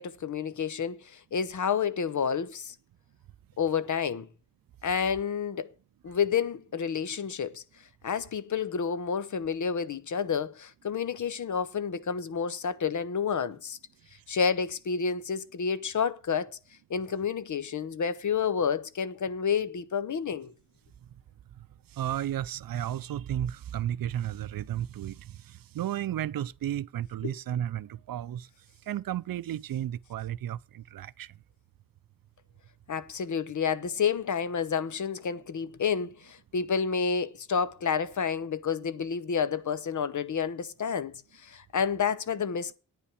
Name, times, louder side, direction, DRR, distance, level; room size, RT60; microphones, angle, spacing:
voice 1, 0.0-2.7 3.6-4.3 4.8-5.7 6.0-7.6 8.0-13.8 14.3-16.5 16.9-20.5 27.2-27.3 32.9-42.7, left 6 dB, 60° left, 0.8 m, -30 dB
voice 2, 21.9-28.5 28.9-31.3, right 11 dB, 80° right, 0.5 m, -33 dB
9.5 x 5.6 x 8.3 m
wide cardioid pair, 155°, 34 cm